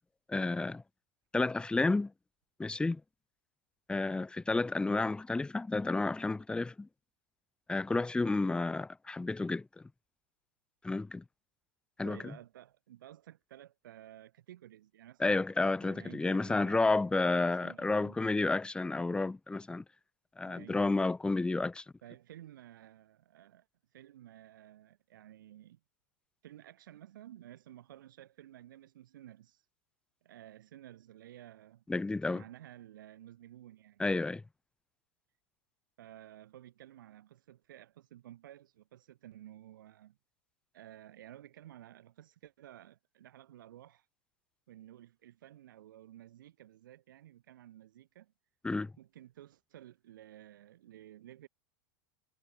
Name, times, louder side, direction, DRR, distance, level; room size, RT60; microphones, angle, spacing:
voice 1, 0.3-0.8 1.3-2.1 2.6-3.0 3.9-6.9 7.7-9.6 10.8-11.2 12.0-12.2 15.2-19.8 20.4-21.8 31.9-32.4 34.0-34.4 48.6-48.9, left 3 dB, 10° left, 1.0 m, -31 dB
voice 2, 12.0-15.4 15.8-18.7 20.4-21.0 22.0-23.7 23.9-25.8 26.4-29.7 30.2-31.8 32.3-34.1 36.0-40.2 40.7-44.1 44.7-48.3 49.0-51.5, right 12 dB, 80° right, 6.2 m, -54 dB
hypercardioid pair, 105°, 11 cm